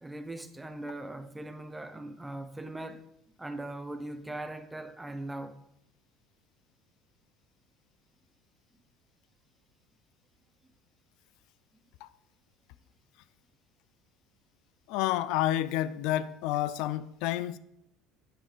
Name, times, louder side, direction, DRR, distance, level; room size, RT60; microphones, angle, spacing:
voice 1, 0.0-3.1 3.4-5.6, right 1 dB, 5° right, 0.5 m, -40 dB
voice 2, 14.9-17.6, left 13 dB, 60° left, 0.4 m, -29 dB
8.9 x 5.3 x 4.9 m
cardioid pair, 170°, 0 cm